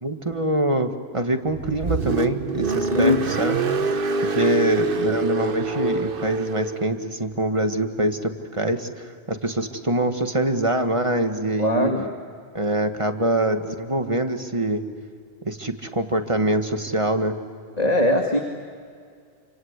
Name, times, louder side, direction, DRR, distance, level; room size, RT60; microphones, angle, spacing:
voice 1, 0.0-3.6 4.2-11.9 12.5-14.8 15.4-17.4, right 1 dB, 30° right, 6 dB, 1.8 m, -24 dB
Car, 1.5-6.9, right 4 dB, 60° right, 1.2 m, -25 dB
voice 2, 2.9-3.2 11.6-12.1 17.8-18.4, left 1 dB, 40° left, 2 dB, 2.1 m, -20 dB
28.5 x 26.0 x 8.1 m, 2.2 s
omnidirectional pair, 1.1 m